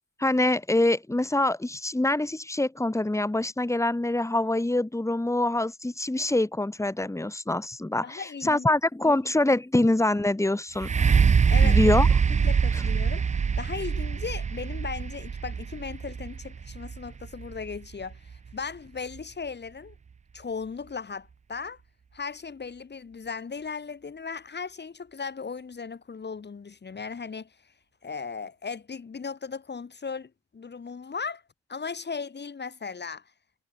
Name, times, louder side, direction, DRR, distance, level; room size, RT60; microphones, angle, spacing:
voice 1, 0.2-10.9 11.6-12.1, left 2 dB, 10° left, 4.0 m, -25 dB
voice 2, 8.0-8.7 9.0-9.2 11.5-12.0 12.4-13.3 13.6-19.9 20.3-21.8 22.1-27.7 28.0-31.4 31.7-33.3, left 5 dB, 35° left, 4.2 m, -37 dB
sound 1, 10.8-18.5 19.2-19.3, right 6 dB, 25° right, 0.5 m, -24 dB
cardioid pair, 90°, 30 cm